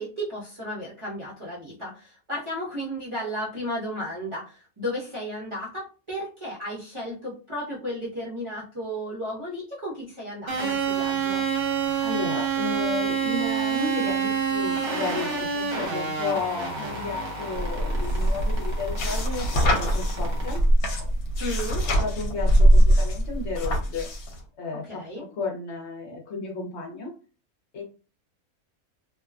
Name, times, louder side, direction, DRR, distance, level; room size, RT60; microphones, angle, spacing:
voice 1, 0.0-11.4 21.4-21.9 24.9-25.3, equal, 25° right, -10 dB, 0.8 m, -34 dB
sound 1, 10.5-20.6, right 6 dB, 55° right, 1.1 m, -28 dB
voice 2, 12.0-20.6 21.9-24.1 24.6-27.1 27.7-27.8, left 4 dB, 55° left, 1 dB, 0.9 m, -33 dB
sound 2, 17.6-24.4, right 1 dB, 75° left, 1.1 m, -22 dB
2.6 x 2.2 x 2.4 m, 0.35 s
omnidirectional pair, 1.6 m